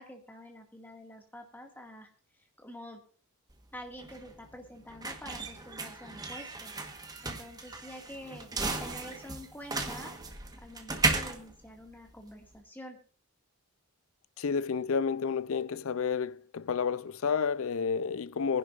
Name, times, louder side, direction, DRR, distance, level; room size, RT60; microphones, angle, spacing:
voice 1, 0.0-2.1 2.4-3.0 3.7-8.5 8.8-10.2 10.6-13.0, left 1 dB, 10° left, 2.0 m, -47 dB
sound 1, 3.5-12.6, right 3 dB, 15° right, 1.3 m, -35 dB
voice 2, 14.4-18.6, left 6 dB, 65° left, 0.5 m, -30 dB
23.0 x 10.5 x 2.5 m
head